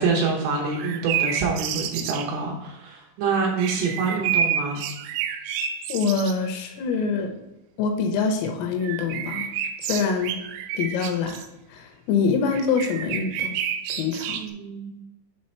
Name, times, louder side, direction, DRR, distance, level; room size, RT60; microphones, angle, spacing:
voice 1, 0.0-4.8 12.2-12.3 14.3-15.0, right 4 dB, 75° right, -1 dB, 3.1 m, -26 dB
sound 1, 0.6-2.3 3.6-6.3 8.8-11.5 12.5-14.5, right 8 dB, 90° right, 3.4 m, -29 dB
voice 2, 5.9-7.3 7.8-9.5 9.8-10.4 10.7-11.4 11.7-13.6 13.9-14.4, left 5 dB, 80° left, 4 dB, 3.4 m, -25 dB
7.7 x 3.9 x 4.3 m, 0.97 s
omnidirectional pair, 6.0 m